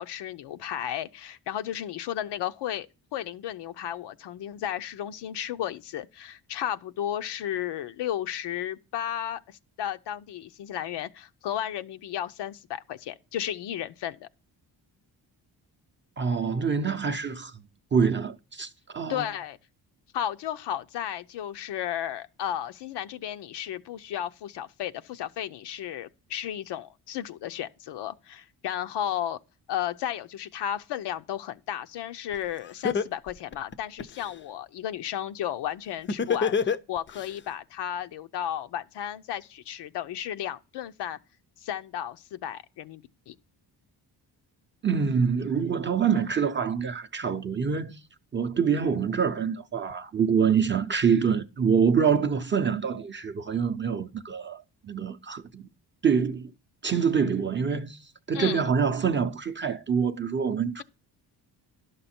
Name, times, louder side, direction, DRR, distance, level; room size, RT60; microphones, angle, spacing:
voice 1, 0.0-14.3 19.1-19.6 20.1-29.4 29.7-41.2 41.6-43.3 58.3-58.7, left 11 dB, 85° left, 0.7 m, -34 dB
voice 2, 16.2-17.5 17.9-19.3 44.8-48.0 48.3-55.6 56.0-56.5 56.8-58.0 58.3-60.8, right 6 dB, 30° right, 0.5 m, -26 dB
Laughter, 32.3-32.4 32.8-34.3 36.1-37.3, left 6 dB, 30° left, 0.4 m, -26 dB
12.0 x 6.7 x 4.3 m
cardioid pair, 155°, 41 cm